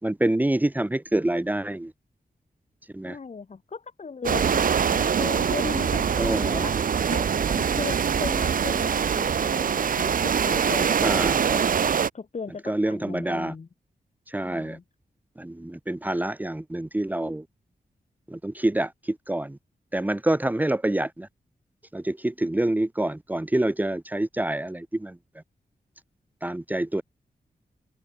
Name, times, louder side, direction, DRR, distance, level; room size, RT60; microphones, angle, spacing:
voice 1, 0.0-1.9 2.9-3.2 6.2-6.7 11.0-11.7 12.6-13.5 14.3-14.8 15.4-17.5 18.3-19.6 19.9-21.3 21.9-25.2 26.4-27.0, right 1 dB, 10° right, 1.9 m, -27 dB
voice 2, 3.0-6.7 7.0-11.2 12.1-13.7 14.4-14.8, left 5 dB, 45° left, 7.9 m, -37 dB
sound 1, 4.2-12.1, right 7 dB, 60° right, 0.8 m, -23 dB
wide cardioid pair, 175°, 16 cm